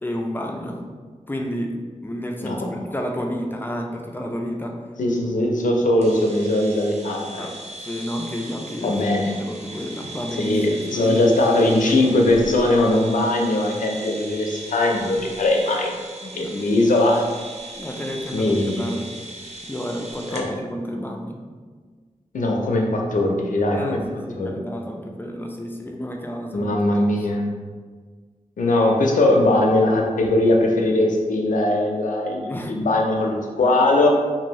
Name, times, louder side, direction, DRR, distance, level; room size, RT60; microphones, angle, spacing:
voice 1, 0.0-0.8 1.3-4.8 7.3-9.0 9.4-12.1 16.3-16.6 17.8-19.1 19.6-21.4 23.7-27.1 32.5-32.7, equal, 15° left, 1 dB, 0.4 m, -31 dB
voice 2, 5.0-7.5 8.8-9.3 10.4-15.9 16.2-17.2 18.3-19.0 20.3-20.5 22.3-24.0 24.4-24.5 26.5-27.4 28.6-34.1, left 1 dB, 85° left, 1 dB, 0.5 m, -20 dB
sound 1, 6.0-20.5, right 2 dB, 55° right, 0.5 m, -38 dB
2.6 x 2.6 x 3.0 m, 1.5 s
wide cardioid pair, 85°, 13 cm